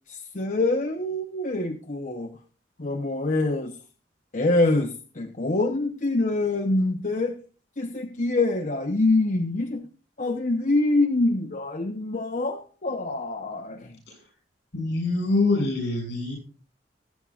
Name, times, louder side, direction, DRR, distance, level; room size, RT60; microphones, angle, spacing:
voice 1, 0.1-2.3 2.8-3.8 4.3-7.4 7.8-9.9 10.2-14.0, left 2 dB, 45° left, 0.9 m, -25 dB
voice 2, 14.7-16.4, left 2 dB, 70° left, 7.2 m, -25 dB
20.0 x 8.9 x 2.5 m
head